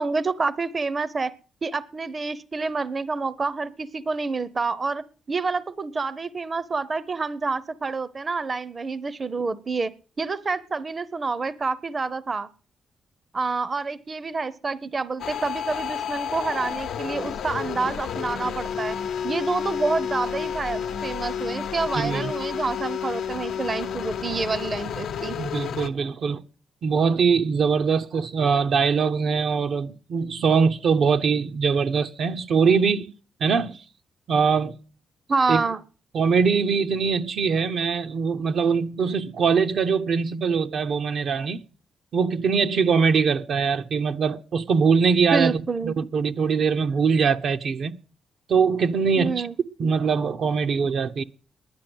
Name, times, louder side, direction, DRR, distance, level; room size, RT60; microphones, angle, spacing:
voice 1, 0.0-1.3 1.6-12.5 13.3-19.0 19.2-25.4 35.3-35.8 45.3-45.9 49.2-49.5, right 4 dB, 35° right, 0.7 m, -28 dB
sound 1, 15.2-25.9, left 7 dB, 80° left, 0.8 m, -31 dB
voice 2, 22.0-22.3 25.4-26.4 26.8-33.1 33.4-33.8 34.3-34.7 35.5-35.6 36.1-41.6 42.1-47.9 48.5-49.5 49.8-51.2, right 5 dB, 65° right, 0.8 m, -22 dB
10.5 x 10.0 x 7.9 m
cardioid pair, 85°, 0 cm